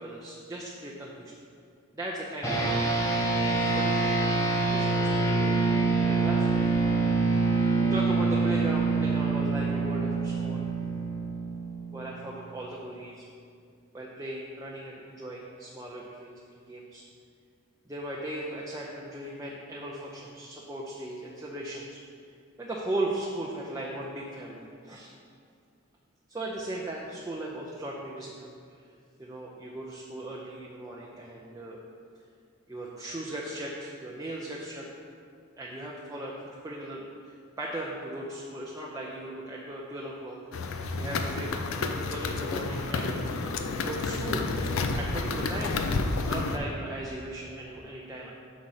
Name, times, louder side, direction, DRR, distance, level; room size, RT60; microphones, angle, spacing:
voice 1, 0.0-1.3 1.9-4.2 4.7-6.6 7.8-10.7 11.9-13.2 13.9-17.0 17.9-22.0 22.6-25.1 26.3-28.5 29.2-31.8 32.7-34.9 35.6-40.4 40.7-41.6 42.1-43.2 43.8-44.5 45.0-45.8 46.2-48.3, right 1 dB, 15° right, -4 dB, 0.4 m, -37 dB
sound 1, 2.4-12.1, right 3 dB, 15° left, 0.8 m, -26 dB
sound 2, 40.5-46.6, left 3 dB, 65° left, 0.4 m, -30 dB
6.0 x 3.8 x 5.6 m, 2.3 s
head